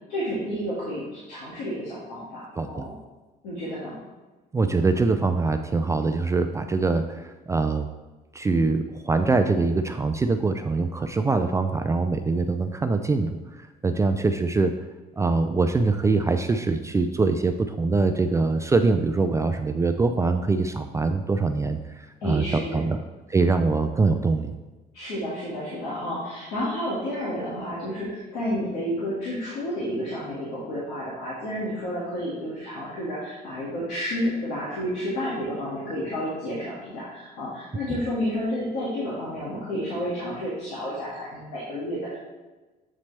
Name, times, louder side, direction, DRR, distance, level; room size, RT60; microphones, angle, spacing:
voice 1, 0.1-2.9 3.4-4.0 22.2-22.9 24.9-42.2, equal, 85° left, -8 dB, 1.9 m, -31 dB
voice 2, 4.5-7.9 8.3-13.4 13.8-14.7 15.2-23.0 23.3-24.5, right 3 dB, 15° right, 7 dB, 0.3 m, -23 dB
7.4 x 4.2 x 3.3 m, 1.2 s
cardioid pair, 110°, 17 cm